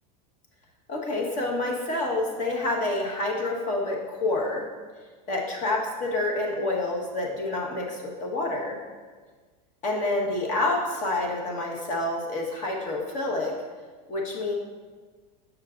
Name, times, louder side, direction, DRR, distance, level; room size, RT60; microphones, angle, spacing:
voice 1, 0.9-4.7 5.3-8.8 9.8-13.5 14.1-14.5, left 2 dB, 40° left, -1 dB, 1.3 m, -28 dB
7.3 x 6.3 x 2.5 m, 1.5 s
supercardioid pair, 135°, 20 cm